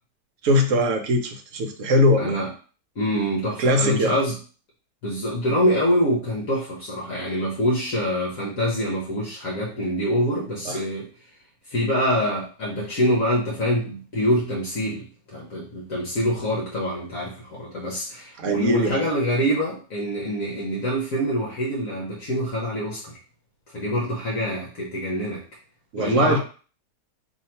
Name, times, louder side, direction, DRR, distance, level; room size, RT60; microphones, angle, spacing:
voice 1, 0.4-2.4 3.6-4.1 10.7-10.8 18.4-19.0 25.9-26.4, left 1 dB, 60° right, 4 dB, 0.9 m, -21 dB
voice 2, 2.2-2.5 3.0-4.3 5.0-11.1 11.7-23.2 23.7-25.4 26.0-26.4, equal, 60° left, -3 dB, 1.2 m, -25 dB
2.8 x 2.8 x 4.4 m, 0.38 s
omnidirectional pair, 1.8 m